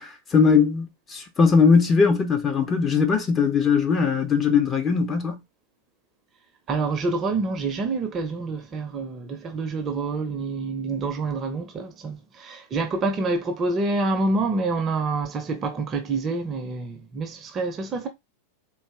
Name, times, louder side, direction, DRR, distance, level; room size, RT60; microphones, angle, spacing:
voice 1, 0.0-5.4, left 5 dB, 20° left, 1.1 m, -20 dB
voice 2, 6.7-18.1, right 3 dB, 25° right, 0.9 m, -27 dB
4.1 x 2.9 x 3.5 m
figure-of-eight pair, 90°, 0 cm